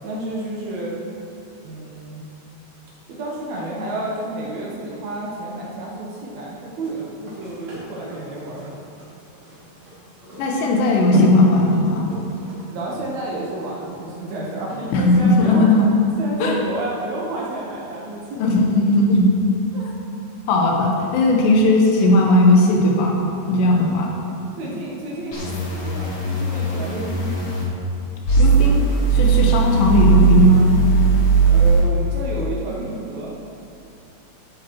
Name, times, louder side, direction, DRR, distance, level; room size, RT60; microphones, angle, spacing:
voice 1, 0.0-1.0 1.6-2.3 3.1-8.7 12.7-15.6 16.2-18.4 19.7-19.9 23.9-24.3 24.6-27.3 29.3-29.6 31.5-33.3, right 2 dB, 75° right, -4 dB, 1.6 m, -30 dB
sound 1, 6.8-15.3 15.7-15.8, equal, 40° right, 3.3 m, -26 dB
voice 2, 10.4-12.1 14.9-15.9 16.4-16.6 18.3-19.3 20.5-23.2 23.5-24.1 28.4-28.8 29.1-30.7, left 1 dB, 80° left, 0 dB, 3.4 m, -17 dB
sound 2, 25.3-27.6 28.3-31.8, right 4 dB, 65° left, 1.4 m, -18 dB
14.0 x 8.7 x 3.1 m, 2.9 s
omnidirectional pair, 4.9 m